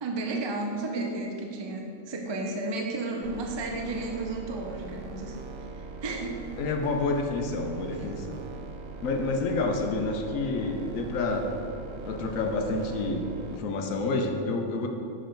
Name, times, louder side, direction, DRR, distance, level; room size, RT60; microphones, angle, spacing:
voice 1, 0.0-5.4 6.0-6.4, right 2 dB, 40° right, 1 dB, 0.4 m, -32 dB
sound 1, 3.2-13.6, right 4 dB, 80° right, 1.0 m, -41 dB
voice 2, 6.6-8.4 9.0-11.5 12.1-13.2 13.5-14.9, left 3 dB, 75° left, 3 dB, 1.1 m, -29 dB
6.4 x 5.2 x 4.4 m, 2.6 s
omnidirectional pair, 1.4 m